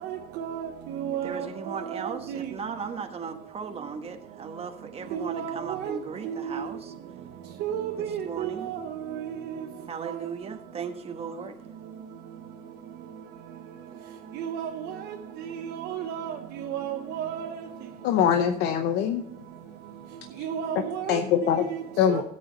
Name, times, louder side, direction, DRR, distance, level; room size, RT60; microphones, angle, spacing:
voice 1, 0.0-2.5 5.1-6.0 6.2-6.6 7.6-9.7 10.0-10.2 14.4-15.0 15.4-17.6 20.4-21.2 21.7-21.8 22.1-22.2, right 9 dB, 90° right, 0.9 m, -33 dB
voice 2, 1.2-6.9 8.2-8.7 9.9-11.6, right 6 dB, 35° right, 1.3 m, -37 dB
voice 3, 18.0-19.2 21.1-21.7 22.0-22.2, left 9 dB, 85° left, 0.8 m, -23 dB
13.5 x 8.4 x 4.1 m
cardioid pair, 110°, 17 cm